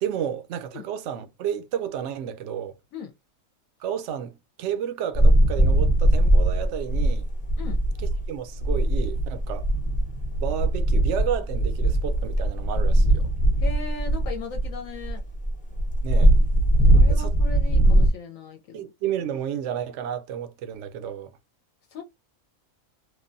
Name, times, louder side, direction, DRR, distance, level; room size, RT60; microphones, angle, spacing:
voice 1, 0.0-2.8 3.8-7.3 8.3-9.7 10.4-13.2 16.0-16.3 17.1-17.3 18.7-21.3, right 9 dB, 65° right, 0.8 m, -31 dB
sound 1, 5.1-8.3 8.5-18.1, right 1 dB, 10° left, 0.5 m, -20 dB
voice 2, 13.6-15.2 16.8-18.9 21.9-22.0, left 4 dB, 70° left, 0.9 m, -38 dB
3.1 x 2.1 x 2.5 m
omnidirectional pair, 1.5 m